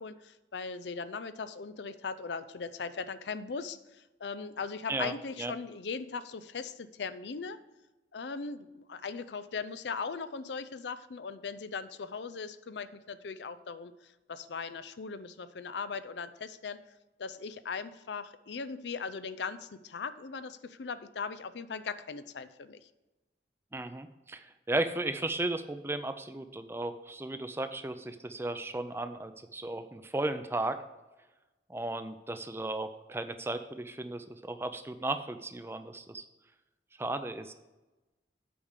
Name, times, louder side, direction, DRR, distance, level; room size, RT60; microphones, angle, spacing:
voice 1, 0.0-7.6 8.1-16.8 17.2-22.9, left 5 dB, 80° left, 13 dB, 0.5 m, -39 dB
voice 2, 23.7-30.8 31.7-36.2 37.0-37.5, right 2 dB, 15° right, 10 dB, 0.4 m, -35 dB
8.7 x 5.1 x 6.5 m, 1.1 s
head